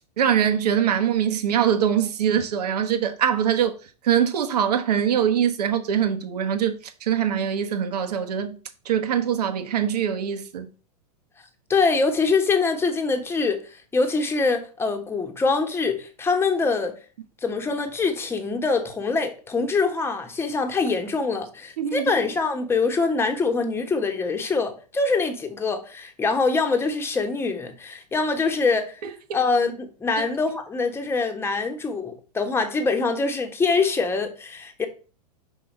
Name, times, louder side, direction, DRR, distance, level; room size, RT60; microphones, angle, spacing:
voice 1, 0.2-3.8 4.0-8.6 8.8-10.7 21.8-22.1 29.0-29.1 30.2-30.3, right 9 dB, 75° right, 1.3 m, -23 dB
voice 2, 11.7-17.0 17.4-29.0 29.3-34.9, left 4 dB, 10° left, 1.1 m, -24 dB
5.7 x 4.1 x 5.4 m
hypercardioid pair, 125°, 21 cm